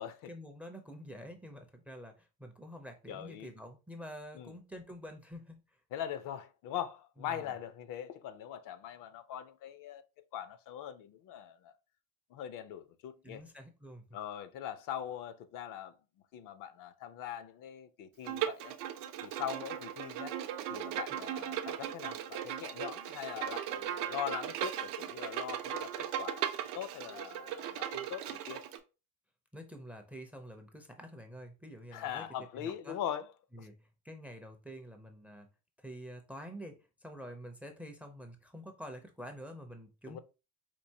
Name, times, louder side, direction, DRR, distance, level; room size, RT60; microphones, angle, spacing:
voice 1, 0.3-5.8 7.2-7.5 13.2-14.2 29.5-32.3 32.6-33.0 33.5-35.5 35.8-40.2, equal, 5° right, 0.4 m, -48 dB
voice 2, 3.1-3.5 4.3-4.5 5.9-10.0 10.3-11.7 12.3-13.4 14.1-15.9 16.3-18.7 19.2-20.3 20.7-28.6 31.9-33.3 33.6-33.7 40.1-40.2, left 10 dB, 60° left, 0.5 m, -41 dB
Bowed string instrument, 18.2-28.8, right 10 dB, 85° right, 0.6 m, -38 dB
4.5 x 2.5 x 2.7 m
cardioid pair, 120°, 37 cm